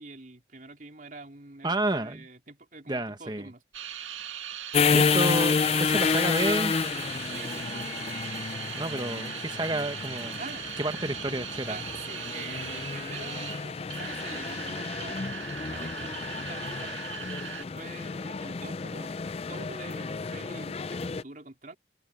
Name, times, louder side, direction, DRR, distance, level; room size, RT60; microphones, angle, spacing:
voice 1, 0.0-3.6 7.3-8.0 10.4-10.7 11.7-17.0 17.6-19.1 19.5-21.8, right 3 dB, 45° right, 4.0 m, -45 dB
voice 2, 1.6-2.3 2.9-3.5 4.9-6.7 8.7-10.3 10.8-11.8, right 2 dB, 20° right, 1.3 m, -30 dB
sound 1, 3.7-17.6, right 9 dB, 85° right, 2.2 m, -39 dB
sound 2, 4.7-21.2, left 5 dB, 30° left, 0.4 m, -30 dB
open air
head